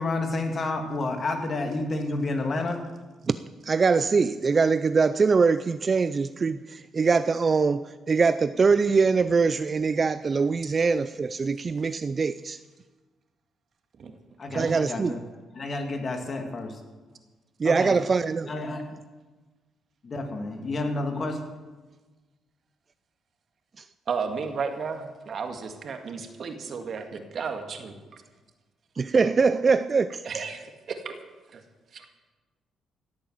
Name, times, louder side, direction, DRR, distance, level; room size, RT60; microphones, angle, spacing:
voice 1, 0.0-2.8 14.4-15.2 15.5-16.8 17.6-18.0 18.5-18.9 20.0-21.4, left 2 dB, 40° left, 4 dB, 2.4 m, -30 dB
voice 2, 3.6-12.6 14.5-15.1 17.6-18.5 23.8-23.9 29.0-30.2, right 4 dB, 35° right, 13 dB, 0.4 m, -23 dB
voice 3, 24.1-28.2 30.2-31.1 31.5-31.6 31.9-32.1, right 5 dB, 55° right, 6 dB, 1.9 m, -33 dB
16.0 x 8.7 x 7.8 m, 1.3 s
cardioid pair, 90°, 0 cm